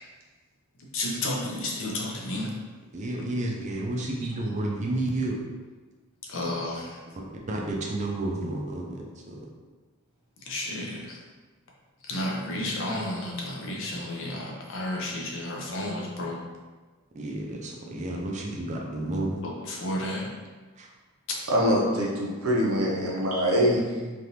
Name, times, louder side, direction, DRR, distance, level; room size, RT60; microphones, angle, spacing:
voice 1, 0.9-2.5 6.3-7.0 10.5-11.2 12.0-16.4 19.4-20.3, left 1 dB, 60° left, -2 dB, 0.6 m, -32 dB
voice 2, 2.9-5.4 7.5-9.3 17.1-19.4 20.8-20.9, right 1 dB, 30° right, -1 dB, 0.4 m, -31 dB
voice 3, 21.5-24.1, equal, 75° right, -4 dB, 0.8 m, -24 dB
3.4 x 2.5 x 2.8 m, 1.3 s
head